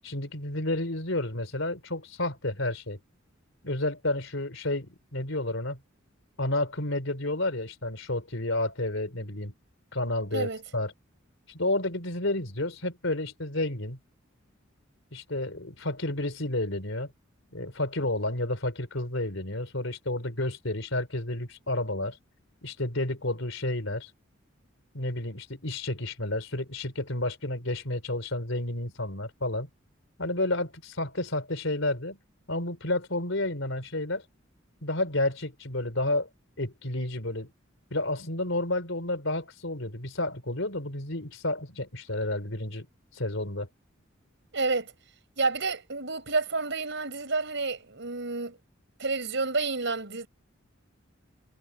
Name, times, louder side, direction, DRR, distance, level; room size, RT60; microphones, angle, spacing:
voice 1, 0.0-3.0 3.6-5.8 6.4-9.5 9.9-10.9 11.5-14.0 15.1-17.1 17.5-22.2 22.6-24.1 24.9-29.7 30.2-32.2 32.5-34.2 34.8-36.3 36.6-37.5 37.9-42.9 43.1-43.7, left 2 dB, 65° left, 5.1 m, -31 dB
voice 2, 10.3-10.6 44.5-44.9 45.4-48.6 49.0-50.3, right 3 dB, 65° right, 5.7 m, -29 dB
head